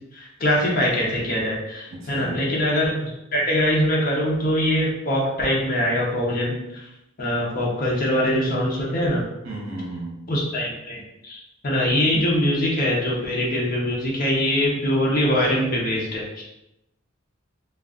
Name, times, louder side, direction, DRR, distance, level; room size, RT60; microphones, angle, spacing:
voice 1, 0.1-6.9 7.2-9.2 10.3-16.2, equal, 40° left, -4 dB, 0.7 m, -23 dB
voice 2, 1.9-2.6 9.4-10.3, right 2 dB, 65° right, -3 dB, 0.9 m, -34 dB
2.4 x 2.3 x 3.7 m, 0.90 s
head